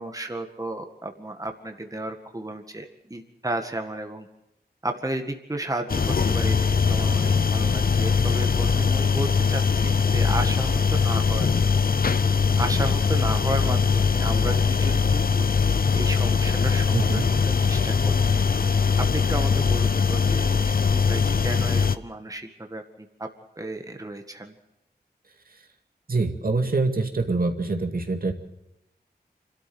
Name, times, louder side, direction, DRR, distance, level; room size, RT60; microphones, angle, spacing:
voice 1, 0.0-4.3 4.8-11.9 12.6-15.5 15.9-18.2 19.0-23.3 23.6-24.6, right 1 dB, 20° right, 5 dB, 1.9 m, -33 dB
sound 1, 5.9-22.0, left 5 dB, 60° left, 0.8 m, -21 dB
voice 2, 16.9-17.2 26.1-28.3, right 3 dB, 60° right, 4 dB, 2.3 m, -25 dB
27.0 x 13.0 x 7.9 m, 0.89 s
wide cardioid pair, 75°, 17 cm